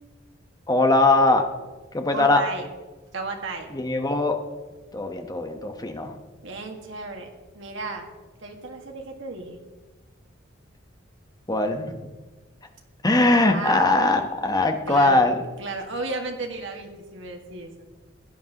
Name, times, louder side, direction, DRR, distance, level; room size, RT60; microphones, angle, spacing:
voice 1, 0.7-1.4 1.9-2.4 3.7-4.4 4.9-6.1 11.5-11.9 13.0-15.4, left 2 dB, 20° left, 5 dB, 1.0 m, -20 dB
voice 2, 2.1-2.7 3.1-3.7 6.4-7.3 7.5-8.1 8.4-9.6 13.5-13.9 14.9-15.2 15.6-17.8, right 3 dB, 70° right, 3 dB, 1.7 m, -34 dB
16.0 x 10.0 x 2.9 m, 1.3 s
head